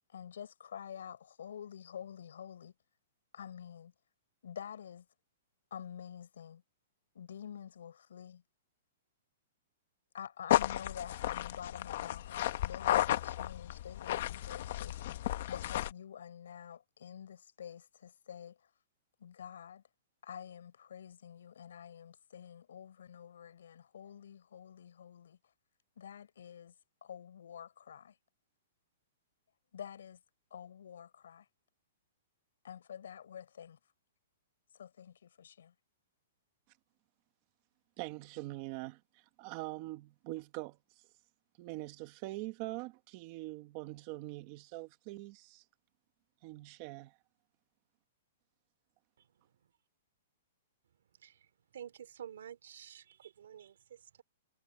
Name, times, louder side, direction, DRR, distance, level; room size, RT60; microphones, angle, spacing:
voice 1, 0.1-2.7 3.3-3.9 4.4-5.1 5.7-6.6 7.1-8.4 10.1-15.0 15.5-18.6 19.2-19.8 20.2-25.4 26.0-26.7 27.0-28.1 29.7-30.2 30.5-31.5 32.6-33.8 34.7-35.7, left 8 dB, 75° left, 5.7 m, -48 dB
sound 1, 10.5-15.9, left 13 dB, 45° left, 1.0 m, -33 dB
voice 2, 38.0-40.8 41.6-45.6 46.4-47.2, right 20 dB, 30° right, 1.4 m, -43 dB
voice 3, 49.2-49.5 51.2-54.2, right 9 dB, 70° right, 2.7 m, -51 dB
hypercardioid pair, 175°, 0 cm